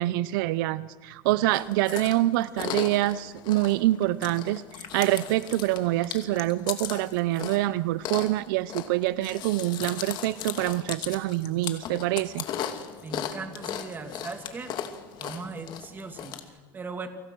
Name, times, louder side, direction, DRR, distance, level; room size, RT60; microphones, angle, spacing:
voice 1, 0.0-12.4, right 16 dB, 70° right, 17 dB, 0.8 m, -26 dB
Chewing mastication, 1.5-16.4, left 10 dB, 40° left, 2.5 m, -37 dB
voice 2, 13.0-14.7 15.2-17.1, right 4 dB, 15° right, 7 dB, 2.6 m, -39 dB
30.0 x 25.5 x 6.3 m, 1.4 s
supercardioid pair, 150°, 11 cm